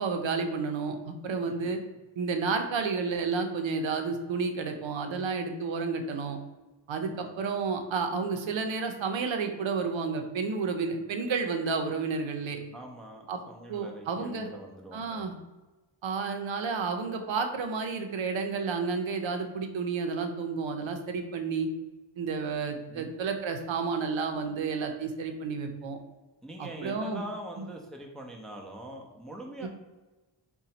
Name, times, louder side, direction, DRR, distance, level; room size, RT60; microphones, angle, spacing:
voice 1, 0.0-1.8 2.2-6.4 6.9-12.6 13.3-13.4 13.7-14.5 14.9-15.3 16.0-21.7 22.2-26.0 26.6-27.2 29.6-29.7, right 4 dB, 75° right, 5 dB, 0.6 m, -31 dB
voice 2, 6.9-7.3 12.7-15.3 22.9-23.1 26.4-29.7, right 1 dB, ahead, 0 dB, 0.5 m, -43 dB
3.9 x 2.2 x 4.2 m, 1.2 s
wide cardioid pair, 105°, 47 cm